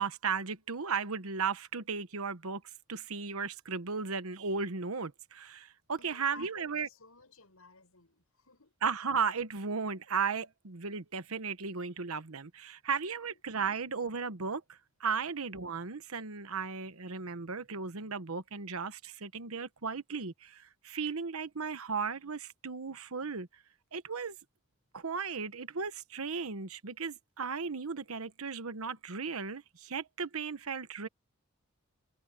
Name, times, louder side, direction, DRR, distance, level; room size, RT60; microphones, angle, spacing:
voice 1, 0.0-2.6 2.9-6.9 8.8-23.5 23.9-24.4 24.9-31.1, right 5 dB, 90° right, 1.1 m, -35 dB
voice 2, 6.0-8.8 13.2-13.4, left 4 dB, 90° left, 7.7 m, -55 dB
head